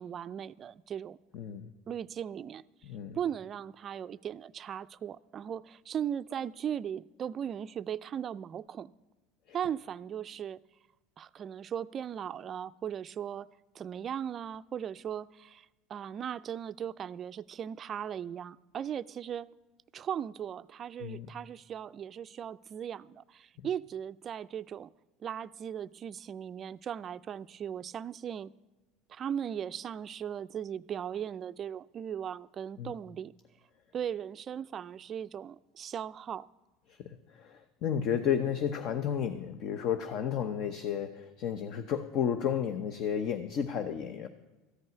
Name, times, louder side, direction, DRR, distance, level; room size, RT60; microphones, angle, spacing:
voice 1, 0.0-1.2 1.9-2.6 3.1-8.9 9.5-10.6 11.2-13.5 13.7-19.5 19.9-24.9 25.2-28.5 29.1-33.3 33.9-36.5, right 9 dB, 35° right, 0.3 m, -38 dB
voice 2, 1.3-1.7 2.8-3.2 9.5-9.6 21.0-21.3 32.8-32.9 36.9-44.3, left 8 dB, 55° left, 0.8 m, -32 dB
14.0 x 5.4 x 9.2 m
supercardioid pair, 110°, 0 cm